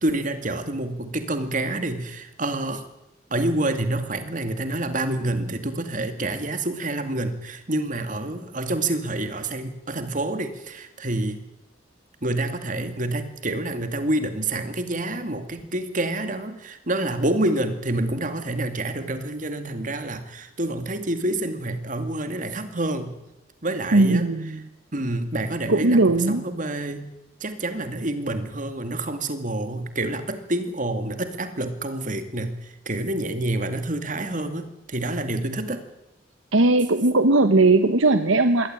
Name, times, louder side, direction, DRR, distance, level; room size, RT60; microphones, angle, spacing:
voice 1, 0.0-2.8 3.3-11.4 12.2-23.1 23.6-24.3 24.9-27.1 27.4-32.6 32.9-35.8, right 1 dB, 40° right, 8 dB, 2.3 m, -27 dB
voice 2, 23.9-24.6 25.7-26.4 36.5-38.7, right 2 dB, 90° right, 9 dB, 1.2 m, -18 dB
22.5 x 17.5 x 9.1 m, 0.90 s
head